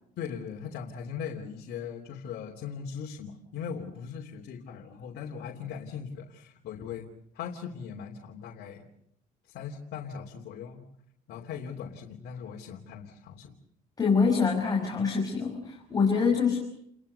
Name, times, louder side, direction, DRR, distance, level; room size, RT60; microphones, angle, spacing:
voice 1, 0.2-8.9 9.4-10.8 11.3-13.5, left 7 dB, 70° left, 0 dB, 3.0 m, -39 dB
voice 2, 14.0-16.6, left 5 dB, 20° left, -1 dB, 5.9 m, -25 dB
29.5 x 21.5 x 6.8 m, 0.72 s
cardioid pair, 110°, 17 cm